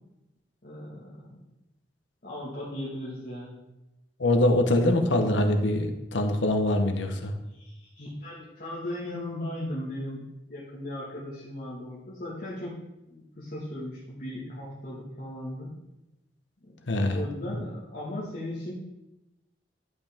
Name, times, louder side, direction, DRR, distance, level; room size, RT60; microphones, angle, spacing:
voice 1, 0.6-1.2 2.2-3.6 7.5-12.7 13.1-15.7 17.1-18.7, left 1 dB, 50° left, -8 dB, 1.7 m, -37 dB
voice 2, 4.2-7.3 16.9-17.6, left 1 dB, 85° left, 5 dB, 1.0 m, -24 dB
11.0 x 5.4 x 3.5 m, 0.95 s
head